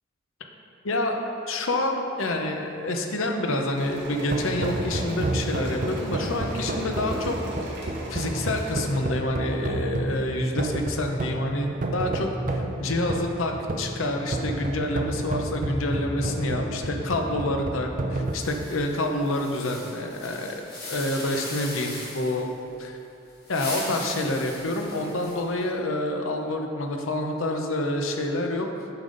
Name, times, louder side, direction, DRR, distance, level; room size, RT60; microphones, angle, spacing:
voice 1, 0.8-7.4 8.1-20.6 20.9-22.5 22.8-23.0 23.5-28.7, left 1 dB, 90° left, 3 dB, 0.7 m, -28 dB
sound 1, 3.7-8.7, right 1 dB, 60° right, 1.9 m, -38 dB
sound 2, 4.2-18.4, right 1 dB, 40° right, 0.5 m, -30 dB
sound 3, 18.3-22.5 23.3-25.6, left 2 dB, 50° left, 1.5 m, -39 dB
8.7 x 5.3 x 3.9 m, 2.7 s
head